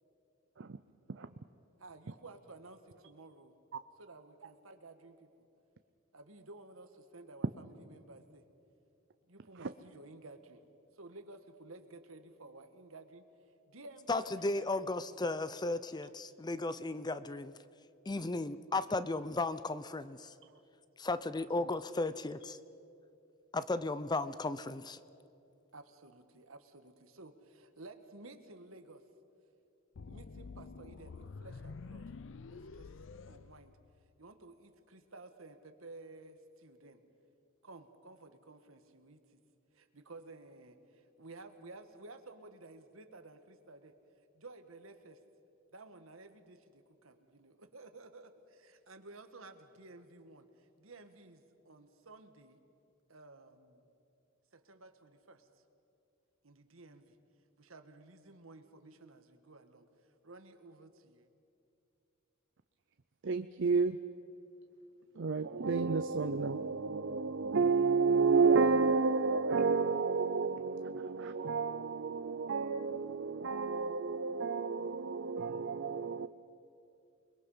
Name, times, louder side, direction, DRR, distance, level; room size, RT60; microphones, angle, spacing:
voice 1, 1.8-3.5 4.0-5.3 6.1-8.4 9.3-10.6 10.9-13.3 13.7-14.9 15.3-15.4 18.7-18.8 25.7-29.0 30.1-32.1 32.5-32.9 33.3-33.8 34.2-37.0 37.6-39.4 39.7-43.9 44.3-45.2 45.7-52.6 53.1-53.9 54.5-55.5 56.4-57.2 57.6-59.9 60.2-61.3, right 2 dB, 85° right, 1.6 m, -54 dB
voice 2, 14.1-17.5 18.1-20.3 21.0-22.6 23.5-25.0, left 2 dB, 20° left, 0.6 m, -35 dB
sound 1, 29.9-34.2, left 4 dB, 65° left, 0.5 m, -48 dB
voice 3, 63.2-64.0 65.2-76.3, right 4 dB, 60° right, 0.6 m, -31 dB
28.5 x 21.5 x 5.7 m
head